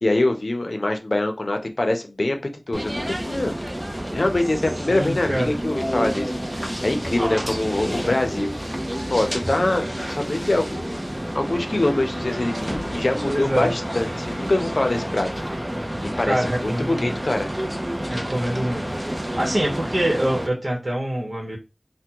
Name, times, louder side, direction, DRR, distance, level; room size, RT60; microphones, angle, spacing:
voice 1, 0.0-2.4 2.7-3.5 4.1-8.6 9.1-9.8 10.1-11.0 11.3-15.4 16.2-17.5, left 2 dB, 80° left, 5 dB, 0.5 m, -24 dB
sound 1, 2.7-20.5, equal, 25° right, 0.6 m, -29 dB
voice 2, 4.9-5.5 13.3-13.7 16.2-17.1 18.1-18.8 19.4-21.6, right 1 dB, 60° right, -2 dB, 1.0 m, -25 dB
3.4 x 2.1 x 2.9 m, 0.28 s
wide cardioid pair, 40°, 0 cm